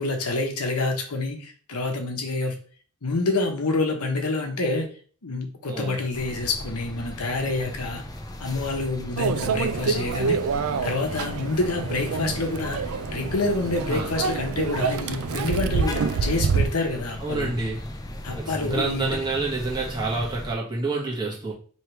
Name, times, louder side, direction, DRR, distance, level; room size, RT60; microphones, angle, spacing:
voice 1, 0.0-2.6 3.0-4.9 5.2-8.0 8.4-10.4 10.8-12.8 13.1-17.5 18.2-19.1, left 3 dB, 85° left, 1.0 m, -27 dB
voice 2, 5.7-6.0 13.9-14.1 17.2-17.8 18.3-21.5, right 3 dB, 20° right, 1.4 m, -28 dB
sound 1, 6.1-20.5, left 1 dB, 15° left, 0.4 m, -38 dB
Microwave oven, 9.2-16.7, right 5 dB, 70° right, 0.4 m, -27 dB
3.3 x 3.2 x 4.5 m
head